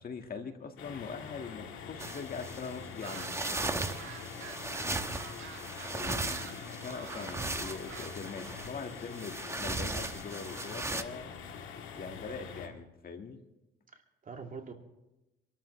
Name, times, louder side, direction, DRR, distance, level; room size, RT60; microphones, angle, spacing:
voice 1, 0.0-3.4 5.9-11.3 11.9-13.4, left 5 dB, 50° left, 5 dB, 1.9 m, -42 dB
sound 1, 0.8-12.7, left 7 dB, 85° left, 2.0 m, -45 dB
sound 2, 2.0-11.0, right 2 dB, 15° right, 1.1 m, -37 dB
sound 3, 3.0-8.3, right 10 dB, 90° right, 1.4 m, -48 dB
voice 2, 4.8-5.2 13.9-14.7, right 5 dB, 45° right, 2 dB, 2.6 m, -46 dB
27.0 x 13.0 x 3.3 m, 0.97 s
cardioid pair, 90°, 20 cm